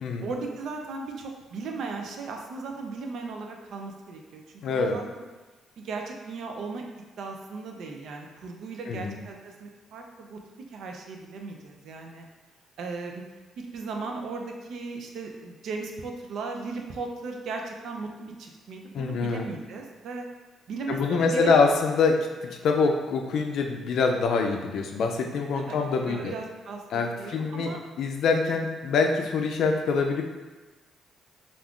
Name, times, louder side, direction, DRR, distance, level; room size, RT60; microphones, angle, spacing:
voice 1, 0.2-4.4 4.7-5.3 5.8-6.8 7.2-12.3 12.8-13.2 13.6-20.3 20.7-21.5 25.5-25.8 26.1-27.8, right 4 dB, 70° right, 2 dB, 0.4 m, -37 dB
voice 2, 4.6-5.0 8.9-9.2 18.9-19.5 20.9-22.2 22.5-26.3 26.9-30.2, left 4 dB, 70° left, 3 dB, 0.4 m, -25 dB
2.4 x 2.3 x 3.5 m, 1.2 s
cardioid pair, 90°, 0 cm